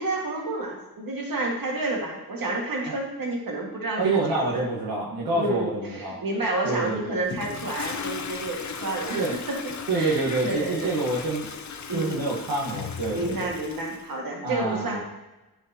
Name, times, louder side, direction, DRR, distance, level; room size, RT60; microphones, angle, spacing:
voice 1, 0.0-4.6 5.3-10.9 11.9-12.2 13.1-15.0, right 2 dB, 65° right, -1 dB, 1.9 m, -30 dB
voice 2, 4.0-6.2 6.6-7.1 9.1-9.3 9.9-11.5 11.9-13.5 14.4-15.0, right 2 dB, 80° right, -5 dB, 1.5 m, -27 dB
Toilet flush, 7.2-14.1, left 6 dB, 50° left, 0.7 m, -37 dB
10.0 x 4.9 x 2.9 m, 1.0 s
cardioid pair, 70°, 37 cm